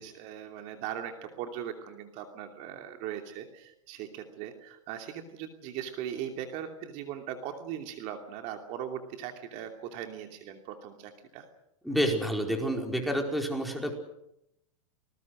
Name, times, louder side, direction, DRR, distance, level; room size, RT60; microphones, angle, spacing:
voice 1, 0.0-11.5, right 9 dB, 45° right, 5 dB, 2.8 m, -39 dB
voice 2, 11.8-14.0, equal, ahead, 2 dB, 4.8 m, -29 dB
29.0 x 20.5 x 6.4 m, 0.80 s
hypercardioid pair, 120°, 17 cm